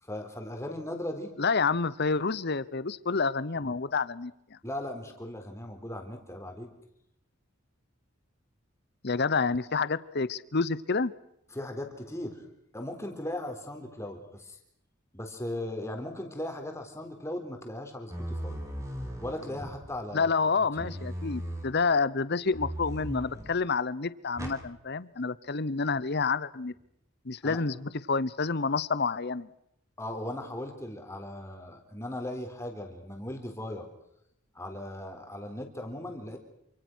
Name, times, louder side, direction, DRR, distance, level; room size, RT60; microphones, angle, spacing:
voice 1, 0.0-1.3 3.6-3.8 4.6-6.7 11.5-12.5 12.7-14.6 15.1-18.6 19.2-20.9 27.4-27.6 30.0-33.9 34.5-36.4, left 1 dB, 15° left, 4 dB, 4.0 m, -38 dB
voice 2, 1.4-4.6 9.0-11.1 20.1-26.7 27.2-29.5, left 4 dB, 50° left, 17 dB, 0.9 m, -28 dB
sound 1, 18.1-20.0 20.8-21.7 22.5-23.6 24.4-24.6, equal, 15° right, 4.8 m, -37 dB
28.0 x 25.5 x 6.3 m, 0.77 s
head